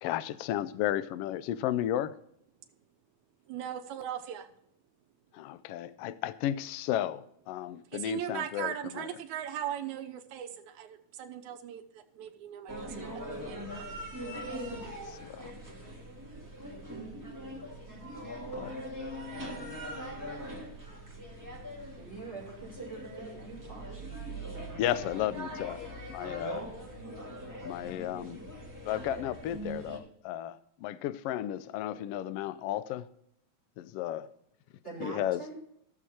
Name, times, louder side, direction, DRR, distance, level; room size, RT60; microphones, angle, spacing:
voice 1, 0.0-2.1 5.3-9.2 15.1-15.5 18.5-18.7 24.8-26.6 27.7-28.4 28.9-33.1 33.8-34.3 35.0-35.4, left 12 dB, 80° left, 15 dB, 1.3 m, -34 dB
voice 2, 3.5-4.5 7.9-13.8, right 10 dB, 85° right, 6 dB, 2.3 m, -39 dB
sound 1, 12.7-30.0, equal, 5° right, 1.8 m, -41 dB
voice 3, 22.0-23.9 34.8-35.6, right 4 dB, 20° left, -7 dB, 4.8 m, -43 dB
14.5 x 7.2 x 4.3 m, 0.71 s
omnidirectional pair, 3.3 m